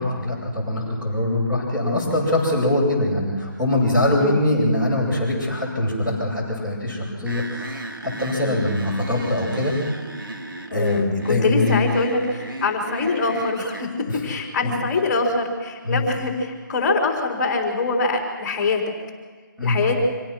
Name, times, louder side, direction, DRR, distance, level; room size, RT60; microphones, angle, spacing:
voice 1, 0.0-9.8 10.7-11.8 14.1-14.2 14.6-14.7 15.8-16.0 19.6-19.8, left 1 dB, 10° right, -7 dB, 7.4 m, -23 dB
sound 1, 7.3-13.9, right 1 dB, 85° right, 2.4 m, -34 dB
voice 2, 10.7-18.8 19.6-20.0, left 3 dB, 20° left, 1 dB, 3.8 m, -24 dB
26.0 x 17.0 x 6.2 m, 1.5 s
figure-of-eight pair, 155°, 11 cm